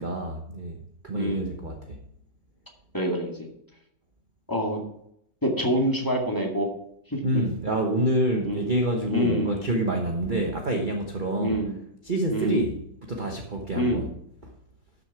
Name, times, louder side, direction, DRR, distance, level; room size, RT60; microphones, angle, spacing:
voice 1, 0.0-2.0 7.2-11.6 12.0-12.7 13.1-14.1, right 1 dB, 30° right, 1.1 m, -27 dB
voice 2, 1.2-1.6 2.9-3.5 4.5-4.8 5.4-6.7 7.1-7.4 8.4-8.6 9.1-9.7 10.3-10.5 11.4-11.8 12.3-12.7 13.7-14.1, equal, 10° left, 2.1 m, -26 dB
12.5 x 7.0 x 4.7 m
omnidirectional pair, 1.9 m